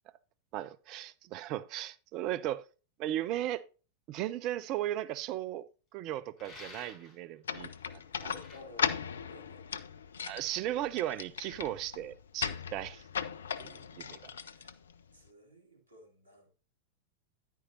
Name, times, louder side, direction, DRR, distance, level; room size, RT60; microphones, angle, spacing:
voice 1, 0.5-2.6 3.0-3.6 4.1-5.7 5.9-8.3 10.3-13.0 13.6-14.2, right 13 dB, 40° right, 0.5 m, -36 dB
sound 1, 6.4-7.2 8.3-8.6, left 2 dB, 35° left, 4.8 m, -50 dB
sound 2, 7.4-15.3, left 7 dB, 65° left, 0.5 m, -38 dB
voice 2, 8.3-9.0 9.3-9.6 14.3-14.7 15.1-16.5, left 1 dB, 90° left, 2.4 m, -55 dB
10.0 x 9.2 x 2.7 m
figure-of-eight pair, 90°, 0 cm